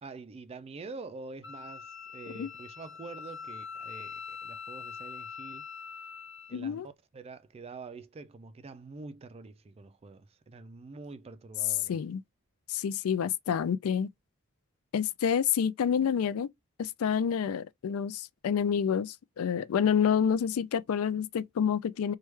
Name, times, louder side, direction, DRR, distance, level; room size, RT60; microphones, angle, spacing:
voice 1, 0.0-5.7 6.5-6.8 7.1-12.0, right 3 dB, 30° right, 0.3 m, -46 dB
Wind instrument woodwind instrument, 1.4-6.6, left 6 dB, 55° left, 0.8 m, -43 dB
voice 2, 6.5-6.9 11.9-12.2 12.7-14.1 14.9-16.5 16.8-22.1, left 7 dB, 75° left, 0.3 m, -28 dB
3.2 x 2.2 x 3.0 m
head